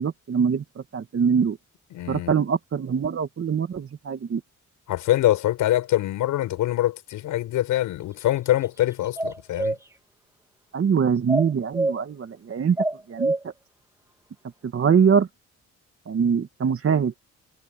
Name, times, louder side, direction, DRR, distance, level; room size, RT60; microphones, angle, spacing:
voice 1, 0.0-1.6 2.1-4.4 10.7-12.8 13.1-13.5 14.6-15.3 16.1-17.2, right 6 dB, 45° right, 2.4 m, -23 dB
voice 2, 1.9-2.3 4.9-9.8, left 14 dB, 85° left, 5.6 m, -24 dB
sound 1, 9.2-9.8 11.3-12.0 12.8-13.4, right 2 dB, 10° right, 3.7 m, -25 dB
cardioid pair, 90°, 30 cm